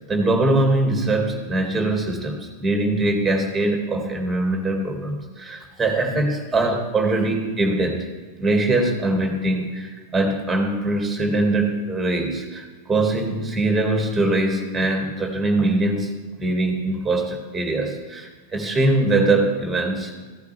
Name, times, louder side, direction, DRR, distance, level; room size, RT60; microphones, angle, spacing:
voice 1, 0.1-8.1 8.4-16.1 16.4-20.1, right 2 dB, 10° right, 3 dB, 2.1 m, -22 dB
15.0 x 8.2 x 3.4 m, 1.5 s
figure-of-eight pair, 90°, 0 cm